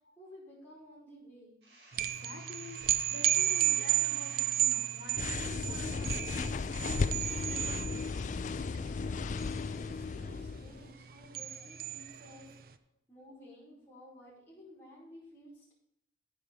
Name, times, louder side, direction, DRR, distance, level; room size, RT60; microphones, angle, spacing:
voice 1, 0.0-1.6 9.7-12.5 13.1-15.7, equal, 10° left, 5.0 m, -54 dB
sound 1, 1.6-7.1, right 1 dB, 75° right, 2.6 m, -55 dB
sound 2, 1.9-12.6, right 12 dB, 55° right, 0.6 m, -33 dB
voice 2, 2.0-8.4, left 2 dB, 90° left, 1.4 m, -49 dB
sound 3, 5.2-10.9, left 4 dB, 45° left, 0.4 m, -35 dB
15.0 x 5.4 x 4.7 m
head